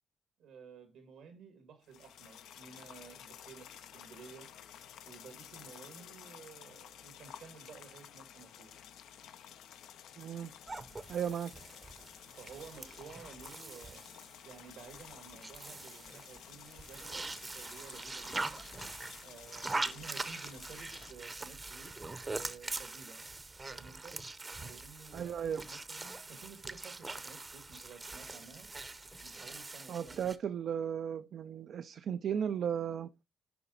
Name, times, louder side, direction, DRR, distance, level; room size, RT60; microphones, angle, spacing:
voice 1, 0.4-4.5 5.0-8.7 12.4-14.0 14.4-18.7 19.2-23.3 23.7-24.2 24.6-28.7 29.2-30.3, right 6 dB, 90° right, 2.2 m, -53 dB
sound 1, 1.8-21.1, left 9 dB, 90° left, 0.5 m, -53 dB
voice 2, 10.2-10.5 11.1-11.5 25.1-25.6 29.9-33.1, right 8 dB, 70° right, 0.4 m, -35 dB
sound 2, 10.7-30.4, right 3 dB, 25° right, 0.7 m, -43 dB
6.9 x 5.1 x 3.8 m
cardioid pair, 85°, 0 cm